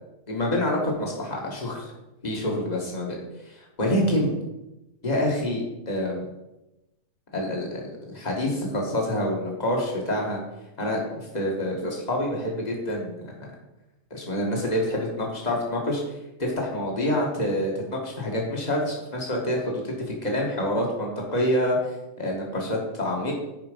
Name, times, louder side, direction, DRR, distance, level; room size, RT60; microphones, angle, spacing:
voice 1, 0.3-1.9 2.2-4.4 5.0-6.3 7.3-10.4 10.8-13.3 14.1-16.0 16.4-21.9 22.2-23.3, left 1 dB, 20° left, -1 dB, 1.3 m, -27 dB
10.0 x 4.9 x 5.3 m, 0.96 s
omnidirectional pair, 3.4 m